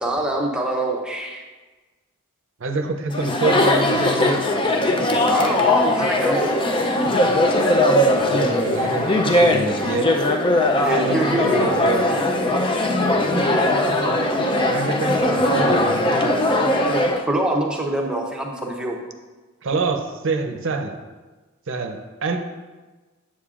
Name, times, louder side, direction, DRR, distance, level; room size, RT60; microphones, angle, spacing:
voice 1, 0.0-1.4 5.3-6.6 10.7-11.5 15.6-15.8 16.9-19.0, right 1 dB, 5° right, 0 dB, 0.7 m, -25 dB
voice 2, 2.6-4.4 8.2-10.1 11.0-12.3 13.0-16.3 19.6-21.0 21.7-22.4, right 3 dB, 60° right, 4 dB, 0.6 m, -27 dB
Chatter, 3.1-17.2, left 1 dB, 20° left, 0.4 m, -19 dB
8.6 x 7.5 x 2.4 m, 1.3 s
head